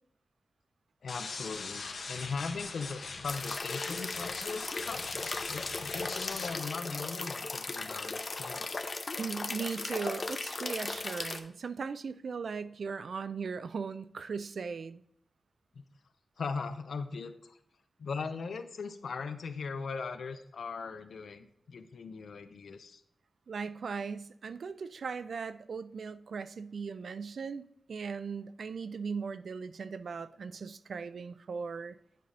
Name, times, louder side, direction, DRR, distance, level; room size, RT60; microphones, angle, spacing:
voice 1, 1.0-8.8 15.7-15.8 16.4-17.6 18.0-23.0, left 5 dB, 90° left, 0.6 m, -39 dB
sound 1, 1.1-6.5, left 4 dB, 70° left, 0.8 m, -41 dB
sound 2, 3.3-11.4, left 3 dB, 40° left, 0.5 m, -37 dB
voice 2, 9.2-15.0 23.5-32.0, right 5 dB, 70° right, 0.3 m, -38 dB
9.3 x 5.2 x 3.3 m
wide cardioid pair, 155°, 0 cm